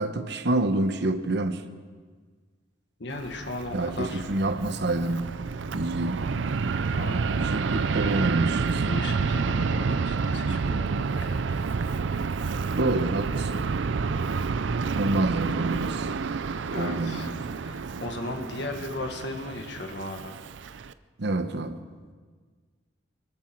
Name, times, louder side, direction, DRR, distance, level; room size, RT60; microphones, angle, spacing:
voice 1, 0.0-1.6 3.7-5.3 5.7-6.2 7.4-9.0 12.8-13.6 14.9-16.1 16.7-17.4 21.2-21.8, right 2 dB, 65° right, 1.0 m, -27 dB
voice 2, 3.0-4.2 6.9-7.4 8.9-11.5 16.7-17.3 17.6-20.4, left 2 dB, 70° left, 1.8 m, -36 dB
Fixed-wing aircraft airplane, 3.1-20.9, right 4 dB, 85° right, 0.5 m, -29 dB
23.5 x 13.5 x 4.5 m
head